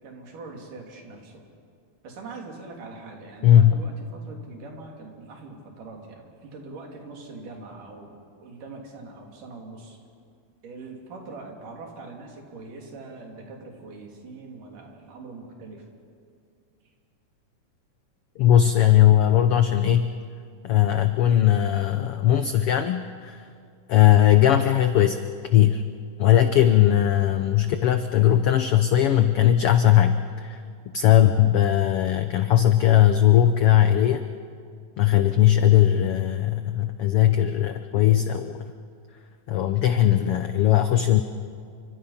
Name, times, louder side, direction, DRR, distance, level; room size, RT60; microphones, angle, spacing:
voice 1, 0.0-1.4 2.0-8.1 8.4-10.0 10.6-15.9, right 3 dB, 80° right, 1 dB, 4.6 m, -42 dB
voice 2, 3.4-3.7 18.4-20.1 20.6-23.5 23.9-25.2 25.5-25.8 26.2-30.6 30.9-34.2 35.0-38.7 39.5-41.2, left 11 dB, 85° left, 9 dB, 1.2 m, -19 dB
29.5 x 25.5 x 5.8 m, 2.3 s
omnidirectional pair, 3.6 m